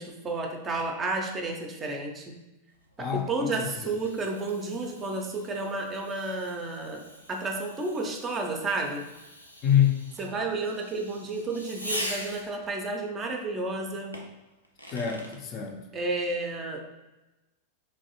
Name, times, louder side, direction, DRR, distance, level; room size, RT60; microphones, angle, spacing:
voice 1, 0.0-2.3 3.0-9.0 10.2-14.2 15.9-17.0, right 2 dB, 25° right, 2 dB, 0.5 m, -31 dB
Fireworks, 2.8-12.7 14.1-15.4, equal, 90° left, 0.4 m, -42 dB
voice 2, 3.0-4.0 9.6-10.0 14.9-15.8, left 9 dB, 35° left, 3 dB, 0.5 m, -26 dB
3.2 x 2.6 x 2.8 m, 1.0 s
figure-of-eight pair, 90°, 0 cm